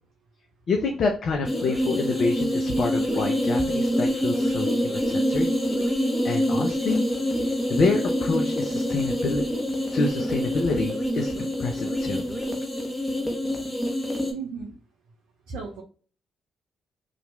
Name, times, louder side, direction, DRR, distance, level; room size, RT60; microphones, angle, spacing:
voice 1, 0.7-5.5 6.2-7.1 7.4-9.4 9.9-12.2, left 3 dB, 60° left, 3 dB, 0.5 m, -27 dB
sound 1, 1.4-14.3, equal, 5° left, 1.1 m, -26 dB
voice 2, 14.3-14.7 15.5-15.8, right 5 dB, 75° right, -1 dB, 0.6 m, -35 dB
2.9 x 2.5 x 3.0 m, 0.40 s
hypercardioid pair, 40°, 0 cm